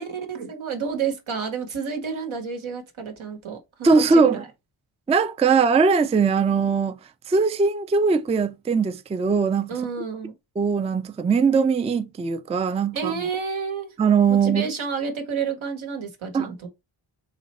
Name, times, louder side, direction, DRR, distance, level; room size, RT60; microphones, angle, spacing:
voice 1, 0.0-4.5 9.7-10.3 12.9-13.9 14.3-16.7, right 6 dB, 75° right, 1.2 m, -30 dB
voice 2, 3.8-4.4 5.1-7.0 7.3-9.7 10.6-13.1 14.0-14.7 16.3-16.5, right 5 dB, 15° right, 0.3 m, -20 dB
3.1 x 2.6 x 4.1 m
cardioid pair, 50°, 48 cm